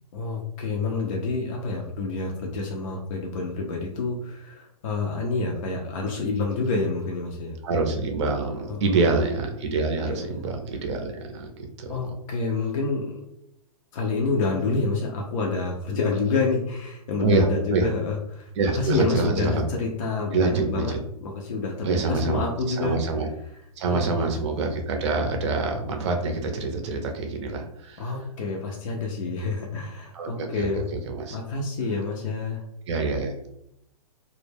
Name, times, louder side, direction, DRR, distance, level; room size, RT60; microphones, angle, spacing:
voice 1, 0.1-7.6 8.7-9.2 10.0-10.5 11.9-13.2 13.9-20.9 21.2-23.0 23.9-24.3 28.0-30.9 31.3-32.6, left 3 dB, 55° left, -1 dB, 0.5 m, -28 dB
voice 2, 7.6-11.5 11.8-12.1 17.2-17.9 18.6-19.7 20.3-21.0 21.8-23.3 23.8-28.1 30.1-31.4 32.9-33.5, right 3 dB, 45° right, 4 dB, 0.5 m, -26 dB
2.2 x 2.1 x 3.1 m, 0.78 s
hypercardioid pair, 150°, 21 cm